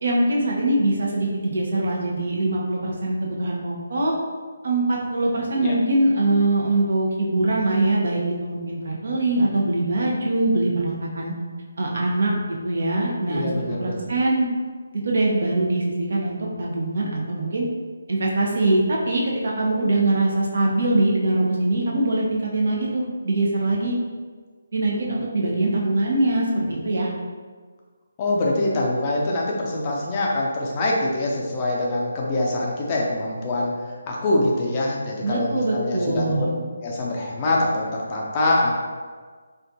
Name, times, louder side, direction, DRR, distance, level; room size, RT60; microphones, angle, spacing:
voice 1, 0.0-4.1 4.6-11.3 11.8-12.3 12.6-14.5 14.9-17.6 18.1-24.0 24.7-27.1 35.2-36.5, right 2 dB, 55° right, -3 dB, 0.7 m, -23 dB
voice 2, 13.3-14.0 28.2-33.7 34.1-36.5 36.8-38.7, left 2 dB, 25° left, -3 dB, 0.5 m, -24 dB
4.3 x 2.4 x 2.7 m, 1.5 s
figure-of-eight pair, 150°, 0 cm